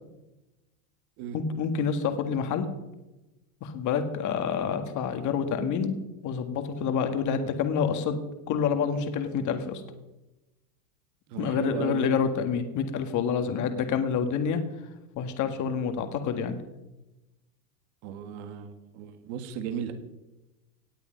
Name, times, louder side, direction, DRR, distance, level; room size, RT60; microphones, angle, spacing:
voice 1, 1.3-2.7 3.6-6.0 6.2-8.2 8.5-9.8 11.4-14.6 15.2-16.6, left 6 dB, 40° left, 8 dB, 1.8 m, -27 dB
voice 2, 11.3-12.1 18.0-19.9, right 8 dB, 55° right, 8 dB, 1.9 m, -35 dB
18.0 x 8.4 x 5.3 m, 1.0 s
supercardioid pair, 125°, 48 cm